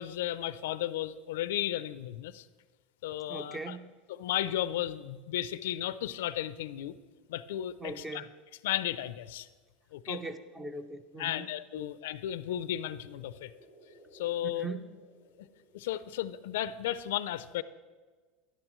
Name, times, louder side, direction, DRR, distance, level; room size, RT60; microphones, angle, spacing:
voice 1, 0.0-2.5 3.0-3.8 4.2-7.0 7.3-8.3 8.6-9.5 9.9-10.2 11.2-13.5 14.1-14.7 15.4-15.5 15.7-17.6, left 12 dB, 85° left, 15 dB, 0.4 m, -34 dB
voice 2, 3.3-3.9 7.8-8.3 10.1-11.5 11.7-11.9 14.6-14.9, right 3 dB, 15° right, 10 dB, 0.6 m, -40 dB
sound 1, 12.4-16.3, right 1 dB, 65° right, 2.9 m, -59 dB
12.5 x 11.0 x 3.1 m, 1.4 s
supercardioid pair, 150°, 0 cm